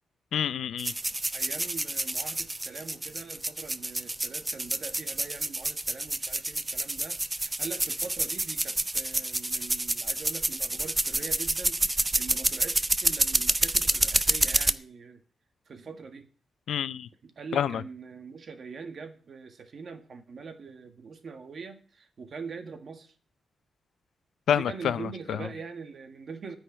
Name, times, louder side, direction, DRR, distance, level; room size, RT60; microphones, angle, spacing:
voice 1, 0.3-0.9 16.7-17.1 17.5-17.8 24.5-25.5, left 9 dB, 75° left, 0.5 m, -28 dB
sound 1, 0.8-14.7, right 2 dB, 15° right, 0.5 m, -28 dB
voice 2, 1.3-15.2 15.7-16.3 17.2-23.1 24.5-26.6, right 5 dB, 45° right, 1.6 m, -43 dB
9.7 x 6.6 x 9.0 m
wide cardioid pair, 160°, 0 cm